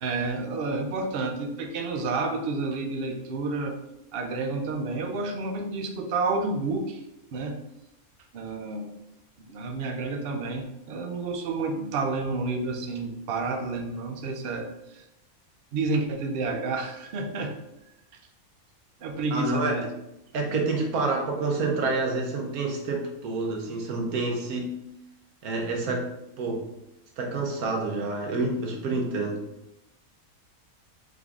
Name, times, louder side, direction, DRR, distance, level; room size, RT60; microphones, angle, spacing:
voice 1, 0.0-3.8 4.1-7.0 7.3-7.6 8.3-8.9 9.4-15.0 15.7-17.5 19.0-19.9, right 3 dB, 55° right, 4 dB, 0.6 m, -30 dB
voice 2, 19.3-19.8 20.3-24.7 25.4-26.1 26.4-26.7 27.2-29.4, right 3 dB, 80° right, 1 dB, 1.3 m, -28 dB
3.8 x 3.6 x 3.5 m, 0.87 s
omnidirectional pair, 1.6 m